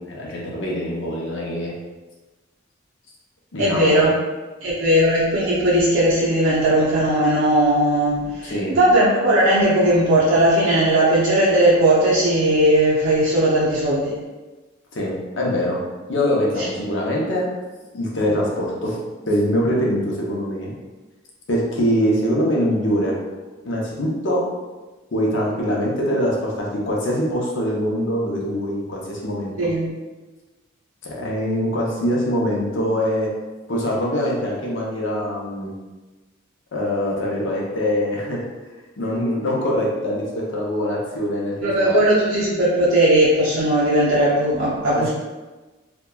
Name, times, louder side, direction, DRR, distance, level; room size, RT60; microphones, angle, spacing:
voice 1, 0.1-1.7 3.5-4.0 8.4-8.8 14.9-15.8 16.1-17.5 17.9-19.0 19.3-20.7 21.5-23.2 23.6-24.5 25.1-29.5 31.0-33.3 33.7-35.7 36.7-38.4 39.0-42.0 44.9-45.1, equal, 60° left, -3 dB, 0.6 m, -23 dB
voice 2, 3.6-4.1 4.6-14.2 29.6-29.9 41.6-45.1, right 1 dB, 75° right, -7 dB, 0.5 m, -18 dB
2.7 x 2.1 x 2.2 m, 1.2 s
head